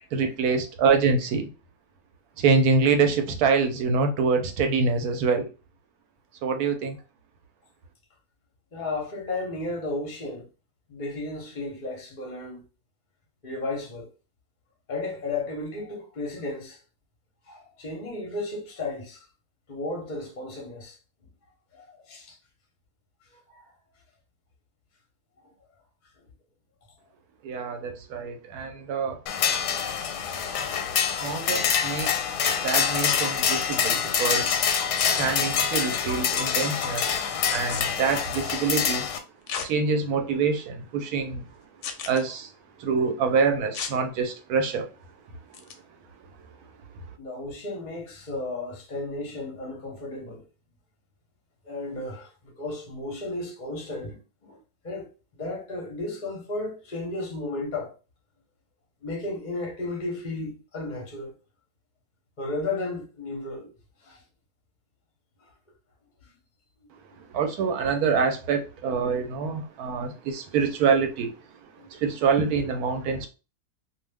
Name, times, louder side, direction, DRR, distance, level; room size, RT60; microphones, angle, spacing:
voice 1, 0.1-1.5 2.4-5.5 6.4-7.0 27.4-29.2 31.2-32.1 32.4-34.5 35.2-37.1 37.5-39.1 39.6-41.4 42.1-42.5 42.8-44.9 67.3-71.3 71.9-73.3, right 5 dB, 70° right, 1.0 m, -25 dB
voice 2, 8.7-10.5 10.9-12.6 13.4-14.1 14.9-16.8 17.5-19.2 19.7-21.0 21.7-22.4 23.5-23.6 47.2-50.4 51.6-52.3 52.6-54.6 54.8-55.1 55.4-57.9 59.0-61.3 62.4-63.7 64.0-64.2 71.8-71.9, left 2 dB, 45° left, 0.6 m, -34 dB
sound 1, 29.3-39.2, left 7 dB, 85° left, 1.2 m, -26 dB
sound 2, 34.9-35.3 37.5-37.8 39.5-39.7 40.3-40.4 41.8-42.2 43.7-44.0 45.5-45.7, left 6 dB, 70° left, 0.9 m, -33 dB
2.5 x 2.3 x 3.3 m
omnidirectional pair, 1.7 m